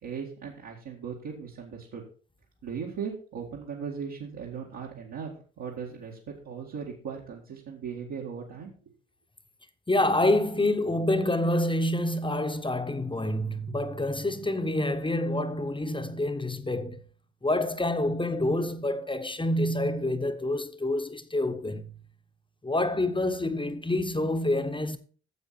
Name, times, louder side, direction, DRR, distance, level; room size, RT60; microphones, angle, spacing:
voice 1, 0.0-2.0 2.6-8.7, right 6 dB, 60° right, 2.1 m, -38 dB
voice 2, 9.9-17.0 17.4-21.9 22.6-25.0, left 1 dB, 15° left, 1.1 m, -27 dB
9.5 x 7.4 x 4.5 m
hypercardioid pair, 45°, 34 cm